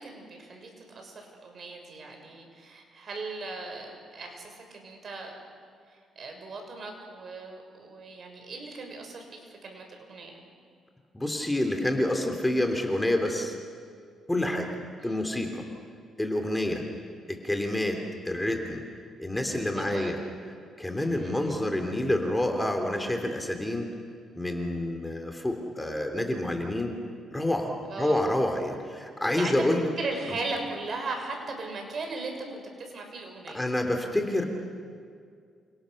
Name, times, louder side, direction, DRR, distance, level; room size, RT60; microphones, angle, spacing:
voice 1, 0.0-5.3 5.9-10.5 15.0-15.2 19.7-20.2 21.0-21.5 27.9-28.2 29.3-29.6 30.0-33.6, right 3 dB, 50° right, 3 dB, 6.5 m, -38 dB
voice 2, 11.1-13.6 14.3-14.7 15.0-15.6 16.2-16.8 17.3-18.8 19.2-20.2 20.8-23.9 24.4-26.9 27.3-27.7 28.0-29.9 33.5-34.5, left 1 dB, 10° left, 4 dB, 3.3 m, -28 dB
29.0 x 28.0 x 6.7 m, 2.2 s
cardioid pair, 90°, 0 cm